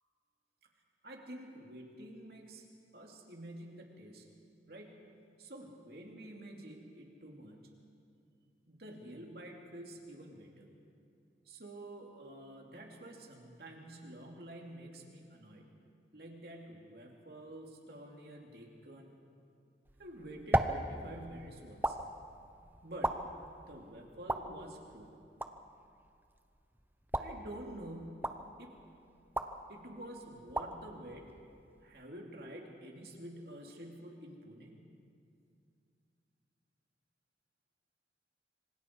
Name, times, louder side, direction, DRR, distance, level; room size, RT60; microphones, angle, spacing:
voice 1, 1.0-2.7 2.9-4.3 4.7-5.1 5.4-7.6 8.7-10.7 11.4-15.7 16.1-19.1 20.0-22.0 22.8-23.3 23.7-25.2 27.2-28.8 29.7-31.3 31.8-35.0, right 1 dB, 60° right, 1 dB, 3.0 m, -49 dB
sound 1, 19.8-32.0, right 1 dB, 10° right, 0.8 m, -39 dB
26.0 x 25.5 x 4.8 m, 2.4 s
head